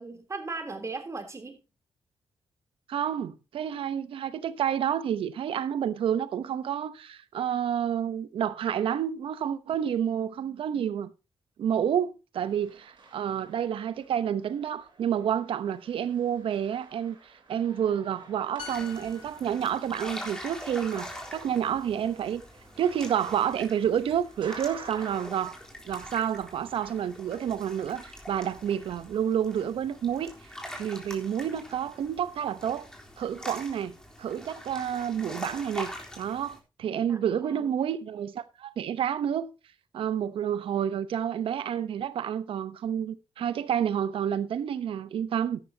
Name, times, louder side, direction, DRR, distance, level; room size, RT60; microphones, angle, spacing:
voice 1, 0.0-1.6 37.1-37.7, right 3 dB, 35° right, 3.4 m, -38 dB
voice 2, 2.9-11.1 11.6-17.2 17.5-22.4 22.8-25.6 25.9-30.3 30.8-32.9 33.2-39.5 39.9-45.6, right 9 dB, 85° right, 0.9 m, -29 dB
sound 1, 12.4-25.2, right 3 dB, 65° right, 4.8 m, -50 dB
sound 2, 18.6-22.2 22.5-22.8, left 6 dB, 75° left, 2.4 m, -49 dB
sound 3, 18.7-36.6, equal, 5° left, 3.7 m, -44 dB
13.5 x 11.5 x 2.8 m
cardioid pair, 85°, 9 cm